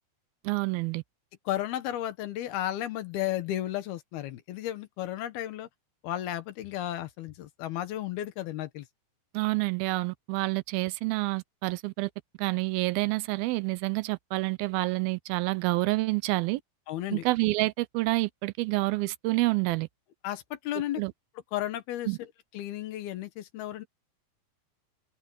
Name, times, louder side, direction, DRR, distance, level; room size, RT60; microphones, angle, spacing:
voice 1, 0.4-1.0 9.3-12.1 12.4-16.6 17.1-19.9 21.0-21.1 22.1-22.2, right 22 dB, 85° right, 2.4 m, -28 dB
voice 2, 1.5-5.7 6.0-8.9 16.9-17.2 20.2-21.0 21.5-22.3 22.5-23.9, left 13 dB, 80° left, 3.3 m, -33 dB
open air
omnidirectional pair, 4.4 m